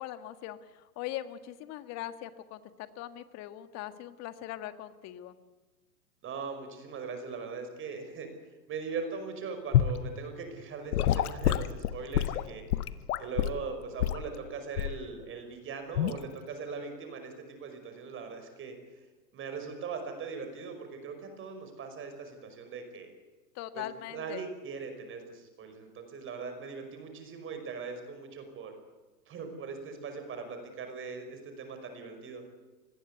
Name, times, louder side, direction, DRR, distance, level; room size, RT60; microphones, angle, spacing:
voice 1, 0.0-5.4 23.6-24.5, left 13 dB, 30° left, 11 dB, 1.7 m, -41 dB
voice 2, 6.2-8.3 8.7-12.6 13.2-18.7 19.3-23.1 23.7-23.9 24.1-28.7 29.3-32.4, right 5 dB, 25° right, 7 dB, 5.4 m, -40 dB
Gurgling / Sink (filling or washing) / Liquid, 9.7-10.0 10.9-13.6 14.0-14.3 14.8-15.0 15.9-16.2, left 11 dB, 60° left, 1.3 m, -27 dB
25.5 x 20.0 x 8.2 m, 1.2 s
hypercardioid pair, 125°, 50 cm